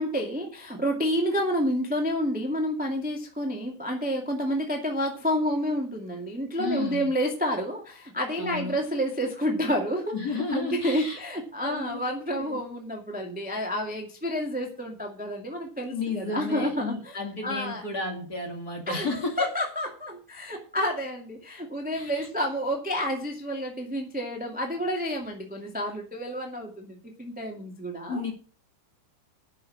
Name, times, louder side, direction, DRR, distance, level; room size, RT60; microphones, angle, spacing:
voice 1, 0.0-17.8 18.9-28.2, equal, 5° right, 2 dB, 1.4 m, -29 dB
voice 2, 6.6-7.1 8.4-8.8 10.1-11.2 11.6-12.0 12.3-12.6 15.9-19.5 21.9-22.3 28.1-28.3, left 3 dB, 30° left, 2 dB, 2.8 m, -32 dB
10.0 x 6.8 x 8.5 m, 0.39 s
omnidirectional pair, 3.7 m